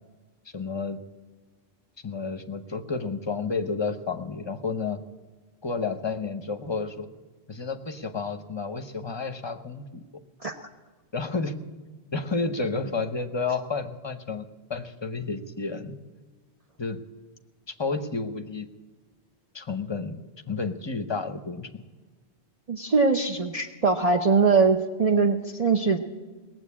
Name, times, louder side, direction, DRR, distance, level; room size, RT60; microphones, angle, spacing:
voice 1, 0.5-1.0 2.0-5.0 5.6-7.1 7.5-10.0 11.1-11.5 12.1-14.4 14.7-16.0 16.8-17.0 17.7-18.7 19.5-21.8, left 4 dB, 25° left, 8 dB, 0.8 m, -31 dB
voice 2, 22.7-26.0, right 4 dB, 40° right, 3 dB, 0.8 m, -22 dB
19.0 x 7.8 x 8.5 m, 1.3 s
omnidirectional pair, 1.1 m